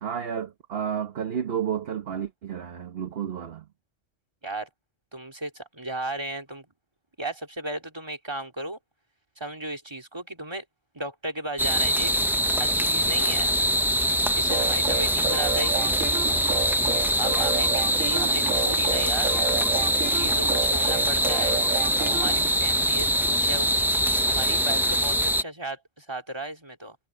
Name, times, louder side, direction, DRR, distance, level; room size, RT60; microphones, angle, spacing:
voice 1, 0.0-3.7, right 8 dB, 55° right, 1.2 m, -31 dB
voice 2, 5.1-6.7 7.2-8.8 9.4-10.6 10.9-12.1 12.6-13.5 14.4-16.0 17.2-19.3 20.1-21.6 22.0-27.0, right 1 dB, 20° right, 2.8 m, -35 dB
sound 1, 11.6-25.4, equal, 5° right, 0.3 m, -23 dB
sound 2, 14.5-22.5, right 6 dB, 90° right, 1.6 m, -32 dB
omnidirectional pair, 1.3 m